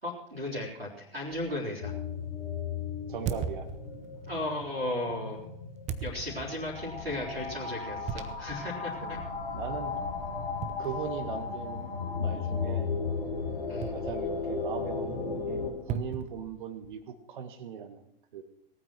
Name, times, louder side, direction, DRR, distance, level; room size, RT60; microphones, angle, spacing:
voice 1, 0.0-1.9 4.3-5.4 6.0-9.2 13.7-13.9, left 1 dB, 90° right, -3 dB, 3.7 m, -35 dB
sound 1, 1.3-1.5 3.3-4.3 5.9-6.7 8.1-8.7 9.2-9.3 10.6-11.5 13.8-14.6 15.9-17.0, right 6 dB, 25° right, 1.0 m, -38 dB
sound 2, 1.8-15.7, left 5 dB, 70° left, 4.1 m, -35 dB
voice 2, 3.1-3.7 9.0-9.2 9.5-10.0 10.8-11.9 12.2-12.9 13.9-18.4, right 7 dB, 55° right, 8 dB, 1.6 m, -39 dB
19.0 x 8.8 x 6.0 m, 0.73 s
figure-of-eight pair, 110°, 29 cm